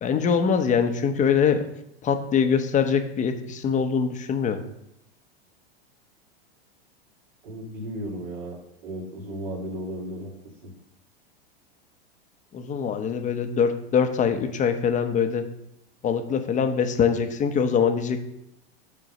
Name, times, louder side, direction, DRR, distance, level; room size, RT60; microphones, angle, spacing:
voice 1, 0.0-1.7 2.0-4.6 12.5-15.5 16.0-18.2, left 6 dB, 25° left, 7 dB, 0.8 m, -23 dB
voice 2, 7.4-10.3 10.6-10.7, equal, 70° right, -2 dB, 2.5 m, -35 dB
6.5 x 3.7 x 6.3 m, 0.79 s
hypercardioid pair, 110°, 31 cm